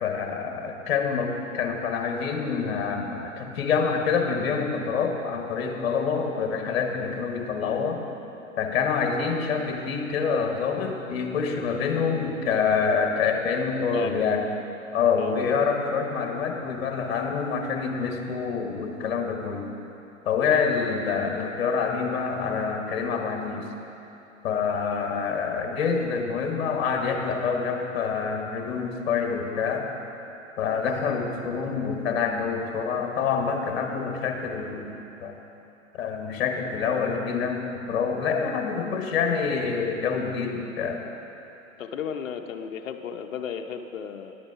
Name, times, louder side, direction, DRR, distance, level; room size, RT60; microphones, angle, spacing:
voice 1, 0.0-8.0 8.6-14.4 14.9-19.7 20.2-23.7 24.4-29.9 30.6-35.3 36.0-41.0, left 5 dB, 50° left, 3 dB, 1.4 m, -26 dB
voice 2, 13.9-14.2 15.2-15.4 41.8-44.3, left 7 dB, 70° left, 5 dB, 0.8 m, -34 dB
10.5 x 8.8 x 4.8 m, 3.0 s
hypercardioid pair, 130°, 41 cm